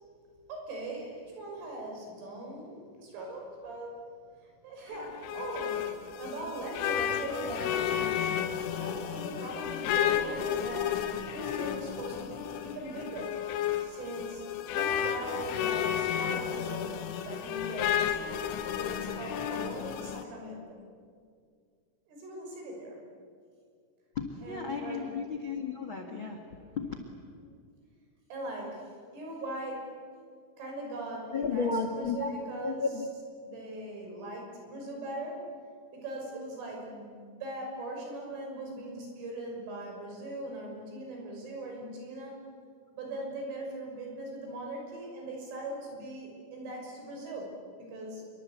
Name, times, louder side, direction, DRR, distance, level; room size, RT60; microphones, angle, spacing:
voice 1, 0.5-4.0 4.6-8.5 8.7-10.9 11.2-13.4 13.8-14.4 14.7-16.9 17.2-18.2 18.7-20.8 22.1-23.0 24.4-25.2 28.3-30.0 30.6-32.9 33.4-35.5 35.9-42.4 43.0-48.2, right 1 dB, 80° right, 1 dB, 8.5 m, -40 dB
sound 1, 4.9-20.2, left 9 dB, 85° left, 3.9 m, -32 dB
voice 2, 24.1-26.4 26.7-26.9 31.3-32.3 32.6-33.1, left 4 dB, 65° left, 4 dB, 1.2 m, -33 dB
28.0 x 24.0 x 8.3 m, 2.1 s
omnidirectional pair, 5.6 m